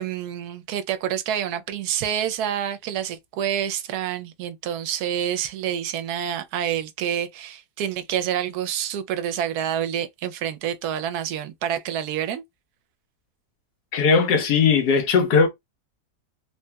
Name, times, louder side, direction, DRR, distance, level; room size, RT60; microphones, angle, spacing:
voice 1, 0.0-12.4, right 10 dB, 80° right, 1.1 m, -28 dB
voice 2, 13.9-15.5, left 5 dB, 90° left, 1.3 m, -18 dB
3.2 x 2.7 x 2.2 m
omnidirectional pair, 1.6 m